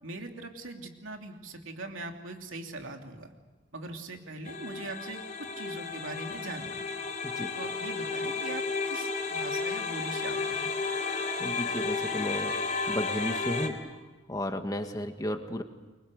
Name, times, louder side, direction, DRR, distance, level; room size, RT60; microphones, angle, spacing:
voice 1, 0.0-3.3 3.7-6.8 7.6-10.7, right 2 dB, 85° right, 3 dB, 3.0 m, -41 dB
sound 1, 4.4-13.7, left 4 dB, 40° left, 3.6 m, -33 dB
voice 2, 7.2-7.5 11.1-13.8 14.3-15.6, equal, 20° left, 6 dB, 1.8 m, -34 dB
30.0 x 23.0 x 6.6 m, 1.2 s
head